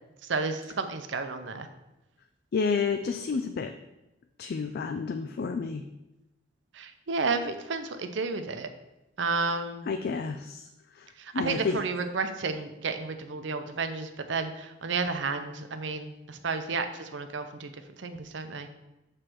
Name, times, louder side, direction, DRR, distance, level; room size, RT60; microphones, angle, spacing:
voice 1, 0.2-1.7 6.7-8.7 9.2-9.9 11.2-17.7 18.0-18.7, right 4 dB, 70° right, 8 dB, 0.7 m, -32 dB
voice 2, 2.5-3.7 4.4-5.8 9.9-11.8, left 5 dB, 55° left, 7 dB, 0.4 m, -30 dB
7.5 x 3.3 x 6.0 m, 0.96 s
head